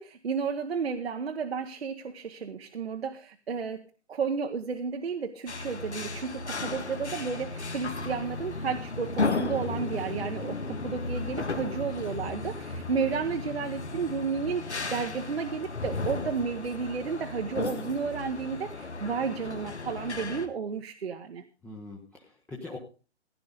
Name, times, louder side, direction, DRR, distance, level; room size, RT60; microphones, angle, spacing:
voice 1, 0.0-21.4, right 5 dB, 60° right, 4 dB, 1.3 m, -32 dB
sound 1, 5.5-20.5, left 3 dB, 75° left, 1.9 m, -35 dB
voice 2, 21.6-22.8, left 2 dB, 5° left, -3 dB, 1.0 m, -43 dB
16.0 x 11.0 x 3.9 m, 0.35 s
figure-of-eight pair, 130°, 34 cm